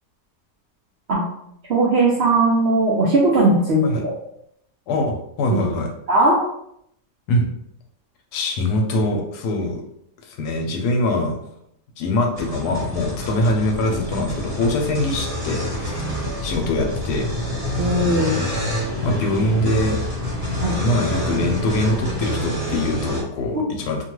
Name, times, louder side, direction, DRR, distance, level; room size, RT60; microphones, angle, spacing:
voice 1, 1.7-3.8 6.1-6.4 17.8-18.4 20.6-20.7 23.5-23.6, right 2 dB, 65° right, -4 dB, 0.6 m, -18 dB
voice 2, 4.9-5.9 7.3-7.5 8.3-9.8 10.3-11.4 12.0-16.1 16.4-17.3 19.0-20.0 20.8-24.0, left 1 dB, 90° left, 2 dB, 1.2 m, -23 dB
sound 1, 12.4-23.2, left 1 dB, 30° right, 0.8 m, -27 dB
2.7 x 2.3 x 3.0 m, 0.73 s
omnidirectional pair, 1.7 m